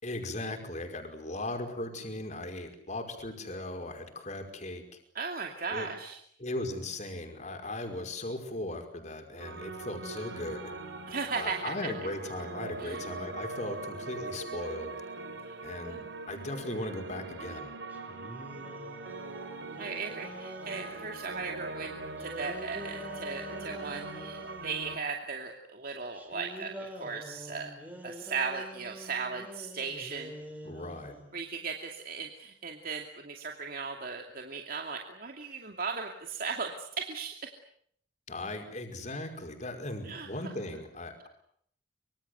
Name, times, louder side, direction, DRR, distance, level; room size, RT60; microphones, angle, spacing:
voice 1, 0.0-4.8 5.7-5.9 6.4-10.7 11.3-15.0 15.6-17.7 30.6-31.2 38.3-41.3, left 1 dB, 40° left, 5 dB, 5.2 m, -38 dB
voice 2, 5.1-6.2 11.1-11.9 12.8-13.0 15.5-15.6 15.8-16.1 19.8-21.9 22.2-27.7 28.0-30.3 31.3-37.5 40.0-40.3, right 5 dB, 50° right, 3 dB, 2.6 m, -37 dB
sound 1, 9.4-25.0, right 3 dB, 80° right, 4.4 m, -41 dB
sound 2, 17.9-21.2 22.0-25.0 26.1-31.4, equal, 10° right, 5.3 m, -46 dB
26.0 x 24.5 x 8.1 m, 0.67 s
head